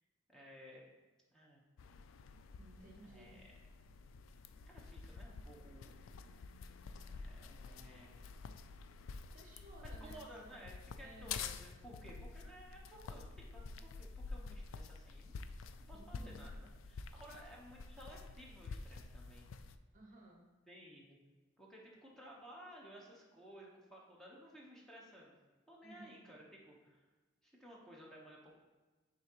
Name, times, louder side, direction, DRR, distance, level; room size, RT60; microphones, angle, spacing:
voice 1, 0.3-0.9 1.3-1.6 3.0-3.5 4.7-6.0 7.0-8.2 9.8-15.4 15.8-19.5 20.7-21.2 21.6-25.3 25.7-27.1 27.4-28.5, equal, ahead, -4 dB, 1.0 m, -56 dB
sound 1, 1.8-19.8, left 4 dB, 80° left, 0.3 m, -49 dB
voice 2, 2.6-3.5 9.3-10.6 11.0-11.3 15.9-16.5 17.3-17.4 19.9-20.5 25.8-26.2, right 2 dB, 40° right, 1 dB, 0.8 m, -58 dB
9.6 x 3.8 x 3.0 m, 1.2 s
head